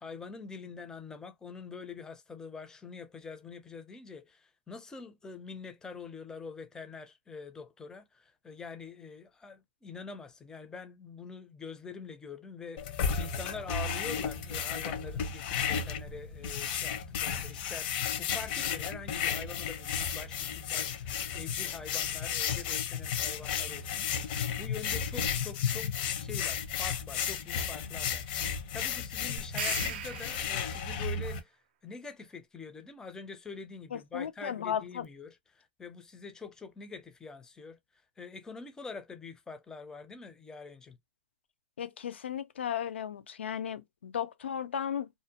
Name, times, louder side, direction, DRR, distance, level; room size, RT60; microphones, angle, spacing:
voice 1, 0.0-17.9 18.2-25.9 26.2-37.8 38.2-41.0, left 5 dB, 10° left, 0.5 m, -45 dB
sound 1, 12.8-31.4, left 7 dB, 50° left, 0.8 m, -33 dB
sound 2, 29.4-31.0, right 11 dB, 55° right, 0.5 m, -39 dB
voice 2, 33.9-35.0 41.8-45.1, left 9 dB, 85° left, 0.6 m, -35 dB
2.6 x 2.1 x 2.7 m
hypercardioid pair, 135°, 6 cm